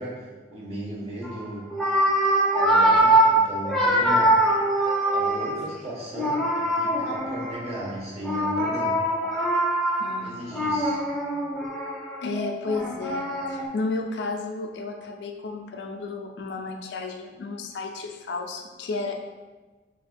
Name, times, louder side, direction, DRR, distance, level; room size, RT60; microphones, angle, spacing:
voice 1, 0.0-1.7 2.5-4.3 5.1-9.0 10.2-11.0, right 1 dB, 35° right, -5 dB, 1.0 m, -36 dB
sound 1, 1.2-1.4 1.7-5.7 6.1-7.8 8.2-13.7, right 1 dB, 5° left, 0.5 m, -23 dB
voice 2, 9.9-10.6 12.2-19.3, left 3 dB, 70° left, 3 dB, 0.4 m, -33 dB
4.2 x 3.3 x 2.2 m, 1.3 s
head